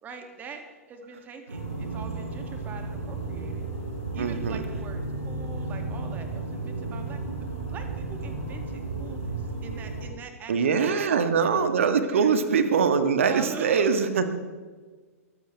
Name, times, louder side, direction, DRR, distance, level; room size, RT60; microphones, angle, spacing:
voice 1, 0.0-3.6 4.1-11.3 11.9-12.3 13.2-13.9, right 5 dB, 20° right, 5 dB, 2.5 m, -43 dB
sound 1, 1.5-10.1, right 3 dB, 85° right, 5.2 m, -33 dB
voice 2, 4.2-4.6 10.5-14.3, right 6 dB, 60° right, 9 dB, 1.7 m, -23 dB
22.0 x 15.5 x 3.5 m, 1.4 s
figure-of-eight pair, 105°, 8 cm